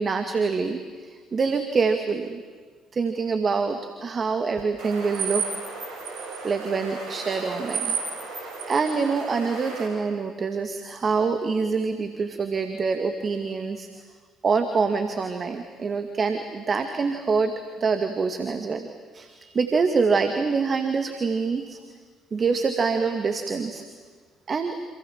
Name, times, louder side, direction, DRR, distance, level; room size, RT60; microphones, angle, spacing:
voice 1, 0.0-2.4 2.9-5.6 6.4-8.0 8.3-13.9 14.4-18.9 19.1-21.8 22.3-23.8 24.5-24.8, right 4 dB, 40° right, 7 dB, 2.3 m, -25 dB
sound 1, 4.8-9.9, right 5 dB, 65° right, 7.1 m, -33 dB
29.0 x 27.5 x 7.5 m, 1.5 s
hypercardioid pair, 50°, 0 cm